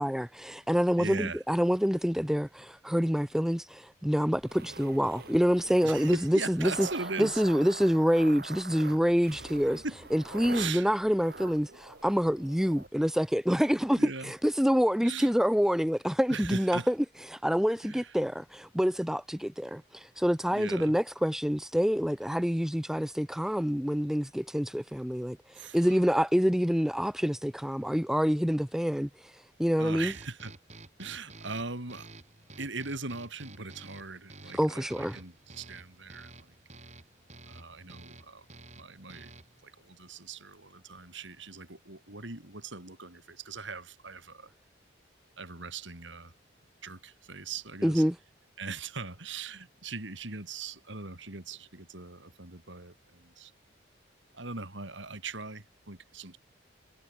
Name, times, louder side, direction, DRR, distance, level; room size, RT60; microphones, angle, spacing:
voice 1, 0.0-6.9 7.2-9.8 10.1-14.0 14.3-16.9 17.3-25.4 25.7-29.1 29.6-30.1 34.6-35.2 47.8-48.2, equal, ahead, 0.7 m, -27 dB
voice 2, 1.0-1.4 5.8-7.4 9.8-10.0 10.5-10.9 13.9-14.3 15.0-15.3 16.3-16.9 17.8-18.2 20.5-21.0 25.5-26.0 29.8-30.5 31.0-32.1 32.6-36.6 37.5-38.5 38.8-39.3 39.6-44.5 45.4-46.3 46.8-48.0 48.6-53.5 54.3-56.4, right 4 dB, 75° right, 3.8 m, -40 dB
sound 1, 4.4-12.9, right 3 dB, 55° right, 4.5 m, -44 dB
sound 2, 30.1-39.6, right 2 dB, 35° right, 4.2 m, -51 dB
head